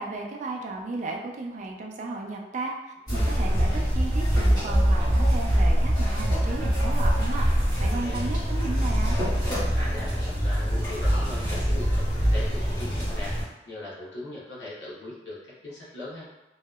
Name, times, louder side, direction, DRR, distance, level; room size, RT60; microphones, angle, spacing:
voice 1, 0.0-9.2, right 3 dB, 40° right, 1 dB, 0.3 m, -34 dB
voice 2, 3.1-3.6 8.0-8.3 9.7-13.4 13.7-16.3, left 1 dB, 75° left, -7 dB, 0.7 m, -39 dB
sound 1, 3.1-13.4, equal, 25° left, 1.2 m, -24 dB
2.7 x 2.0 x 2.2 m, 1.0 s
head